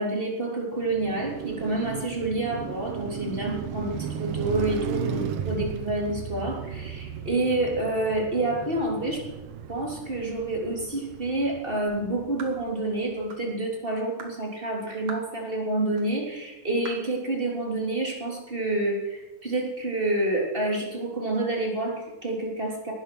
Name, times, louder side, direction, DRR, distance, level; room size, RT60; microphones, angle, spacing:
voice 1, 0.0-9.3 9.7-22.9, right 2 dB, 15° right, -1 dB, 3.4 m, -28 dB
Car passing by, 0.7-13.0, right 8 dB, 80° right, 2.7 m, -35 dB
sound 1, 12.4-12.6 13.3-13.5 14.2-14.4 15.1-15.3 16.0-16.1 16.9-17.1, right 4 dB, 45° right, 3.1 m, -41 dB
19.0 x 11.5 x 6.3 m, 1.1 s
omnidirectional pair, 3.6 m